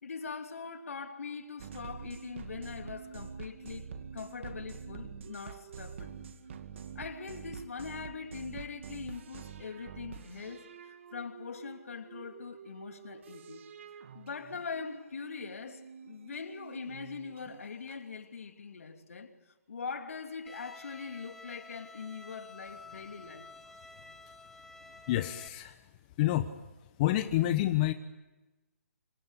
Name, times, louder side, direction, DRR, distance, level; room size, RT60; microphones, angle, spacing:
voice 1, 0.0-6.1 6.9-13.6 14.1-23.5, left 5 dB, 70° left, 2.9 m, -42 dB
sound 1, 1.6-18.0, right 6 dB, 55° right, 2.4 m, -47 dB
Bowed string instrument, 20.5-25.5, left 2 dB, 5° left, 1.7 m, -51 dB
voice 2, 25.1-25.8 26.2-26.5 27.0-27.9, left 14 dB, 35° left, 1.1 m, -28 dB
26.5 x 24.5 x 8.3 m
hypercardioid pair, 140°, 8 cm